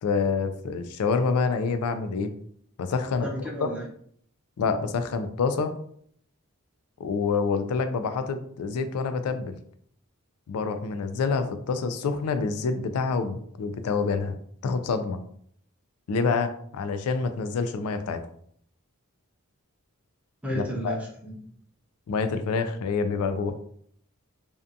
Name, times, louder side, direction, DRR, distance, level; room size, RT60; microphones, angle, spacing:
voice 1, 0.0-2.3 2.8-3.3 3.6-3.7 4.6-5.7 7.0-9.5 10.5-14.4 14.6-15.2 16.1-18.2 20.5-21.0 22.1-23.5, left 4 dB, 75° left, 9 dB, 0.3 m, -27 dB
voice 2, 3.2-3.9 20.4-21.4, equal, 5° right, -4 dB, 0.5 m, -32 dB
2.6 x 2.2 x 2.5 m, 0.64 s
head